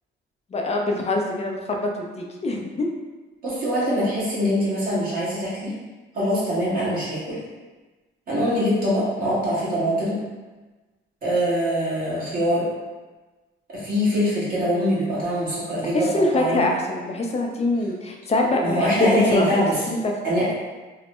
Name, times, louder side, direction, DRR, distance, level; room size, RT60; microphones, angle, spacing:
voice 1, 0.5-1.8 2.2-2.9 15.9-20.1, left 2 dB, 35° left, 1 dB, 0.5 m, -24 dB
voice 2, 3.4-5.7 6.1-7.4 8.3-10.3 11.2-12.7 13.7-16.1 16.3-16.6 18.6-19.8 20.2-20.5, equal, 45° right, -8 dB, 1.4 m, -23 dB
3.1 x 2.1 x 2.9 m, 1.2 s
cardioid pair, 90°, 20 cm